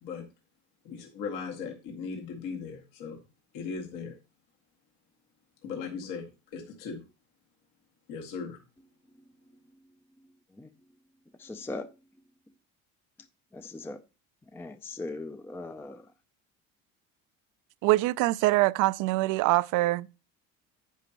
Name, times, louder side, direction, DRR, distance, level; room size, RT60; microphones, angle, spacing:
voice 1, 0.8-3.2 3.5-4.2 5.6-7.0 8.1-8.6, left 5 dB, 70° left, 2.2 m, -38 dB
voice 2, 11.4-11.9 13.5-14.0 14.5-16.0, left 2 dB, 5° left, 0.5 m, -39 dB
voice 3, 17.8-20.2, right 19 dB, 65° right, 0.5 m, -24 dB
10.0 x 9.2 x 3.0 m
cardioid pair, 110°, 33 cm